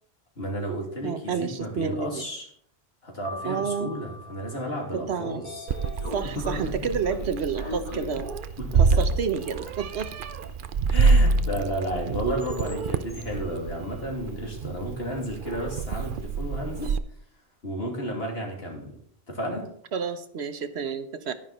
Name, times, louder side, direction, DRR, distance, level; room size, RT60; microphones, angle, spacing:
voice 1, 0.4-2.5 3.0-5.7 6.4-6.5 8.6-8.8 10.9-17.0 17.6-18.9 19.3-19.7, equal, 70° left, 0 dB, 3.1 m, -32 dB
voice 2, 1.0-2.2 3.4-3.9 4.9-5.4 6.1-8.3 8.8-10.1 19.9-21.3, right 6 dB, 80° right, 10 dB, 1.2 m, -30 dB
Piano, 3.3-5.4, left 2 dB, 30° right, 1.1 m, -42 dB
Sliding door, 4.8-15.0, left 2 dB, 25° left, 3.1 m, -44 dB
Meow, 5.7-17.0, right 4 dB, 60° right, 0.8 m, -26 dB
11.0 x 10.5 x 4.2 m, 0.64 s
omnidirectional pair, 1.1 m